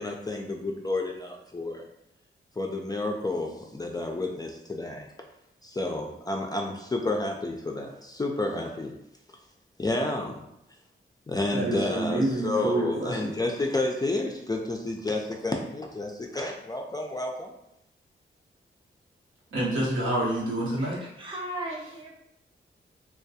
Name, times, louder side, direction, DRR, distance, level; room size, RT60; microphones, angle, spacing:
voice 1, 0.0-1.9 2.6-5.1 5.6-8.9 9.8-10.4 11.3-17.5, left 2 dB, 20° left, 1 dB, 0.3 m, -30 dB
voice 2, 11.5-13.3 19.5-21.0, right 1 dB, 75° right, -6 dB, 0.9 m, -27 dB
voice 3, 20.8-22.1, right 1 dB, 25° right, -2 dB, 0.8 m, -37 dB
2.2 x 2.0 x 2.7 m, 0.82 s
supercardioid pair, 45°, 21 cm